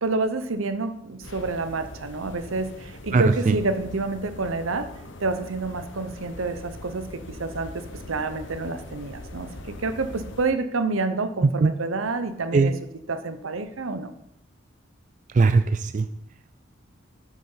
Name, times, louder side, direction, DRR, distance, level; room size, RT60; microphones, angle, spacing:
voice 1, 0.0-4.9 5.2-12.7 13.1-14.1, right 3 dB, 90° right, 10 dB, 0.9 m, -28 dB
sound 1, 1.2-10.5, left 2 dB, 65° left, 0.9 m, -42 dB
voice 2, 3.1-3.6 11.4-11.7 12.5-12.7 15.3-16.1, right 4 dB, 40° right, 11 dB, 0.3 m, -19 dB
8.6 x 6.5 x 5.6 m, 0.79 s
head